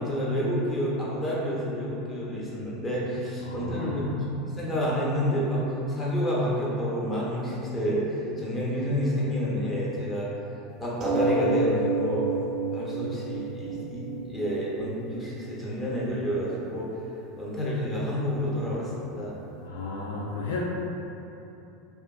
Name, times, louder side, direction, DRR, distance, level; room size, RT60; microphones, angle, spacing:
voice 1, 0.0-10.3 10.8-12.3 12.7-16.9 17.4-19.4, equal, 20° left, -6 dB, 0.9 m, -29 dB
voice 2, 3.4-4.1 19.6-20.6, left 3 dB, 75° left, -4 dB, 0.3 m, -34 dB
sound 1, 11.0-16.0 16.8-16.9 17.2-17.3, right 3 dB, 40° right, 0.5 m, -30 dB
3.5 x 2.4 x 2.4 m, 2.9 s
hypercardioid pair, 80°, 0 cm